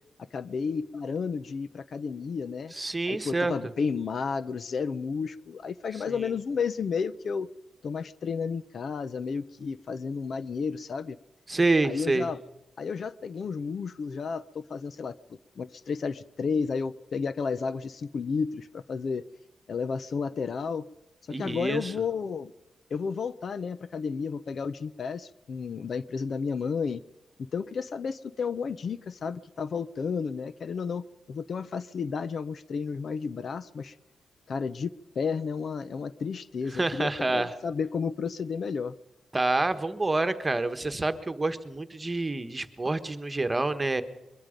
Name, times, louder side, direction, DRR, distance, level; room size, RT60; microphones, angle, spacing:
voice 1, 0.3-2.7 3.1-7.5 7.8-11.2 11.8-12.4 12.8-15.2 15.6-19.2 19.7-20.9 21.3-22.5 22.9-27.0 27.5-33.9 34.5-38.9, left 5 dB, 55° left, 16 dB, 0.7 m, -32 dB
voice 2, 2.7-3.5 11.5-12.3 21.3-21.9 36.7-37.5 39.3-44.0, right 2 dB, 20° right, 9 dB, 1.4 m, -27 dB
23.0 x 22.5 x 5.3 m, 0.96 s
wide cardioid pair, 125°, 0 cm